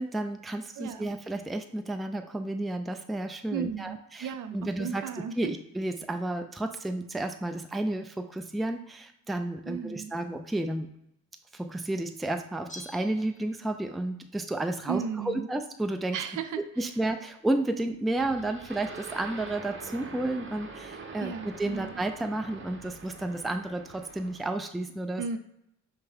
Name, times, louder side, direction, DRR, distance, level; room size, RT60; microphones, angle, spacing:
voice 1, 0.0-5.0 5.4-10.9 11.5-16.2 16.6-25.2, right 2 dB, ahead, 6 dB, 0.4 m, -32 dB
voice 2, 0.8-1.1 3.5-5.5 9.7-10.1 14.9-15.5 16.1-16.6 21.2-21.9 25.2-25.4, right 7 dB, 65° right, 10 dB, 0.5 m, -35 dB
Bell, 12.7-14.1 14.4-14.5, left 2 dB, 20° left, 0.8 m, -50 dB
sound 1, 18.2-24.5, right 4 dB, 35° right, 0.8 m, -44 dB
5.4 x 2.1 x 3.4 m, 0.79 s
supercardioid pair, 55°, 34 cm